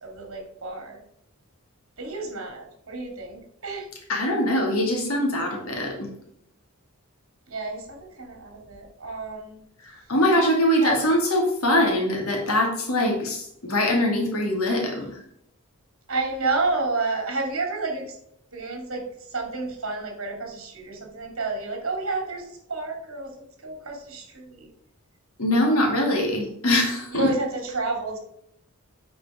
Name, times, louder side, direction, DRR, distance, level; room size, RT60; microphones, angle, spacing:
voice 1, 0.0-1.0 2.0-3.9 7.5-9.6 10.8-11.0 16.1-18.2 18.5-19.0 19.3-23.3 23.6-24.7 27.1-28.2, right 3 dB, 70° right, 2 dB, 2.4 m, -30 dB
voice 2, 4.1-6.1 10.1-15.1 25.4-27.3, left 1 dB, 85° left, 1 dB, 2.3 m, -22 dB
8.1 x 4.6 x 4.9 m, 0.72 s
head